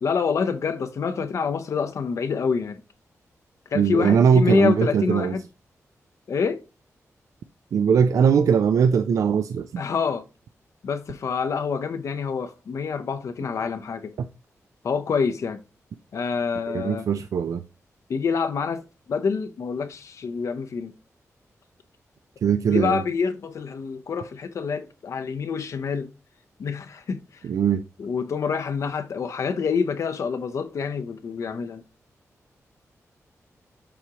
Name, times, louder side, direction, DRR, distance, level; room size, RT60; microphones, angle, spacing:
voice 1, 0.0-2.8 3.7-5.4 6.3-6.6 9.8-10.2 10.8-14.1 14.8-15.6 16.1-17.1 18.1-18.8 19.1-20.9 22.7-26.1 26.6-27.4 28.0-31.8, left 5 dB, 65° left, 0.7 m, -27 dB
voice 2, 3.7-5.3 7.7-9.8 14.2-14.3 16.7-17.6 22.4-23.0 27.5-27.8, right 7 dB, 75° right, 0.4 m, -20 dB
7.1 x 4.8 x 2.9 m
wide cardioid pair, 150°, 6 cm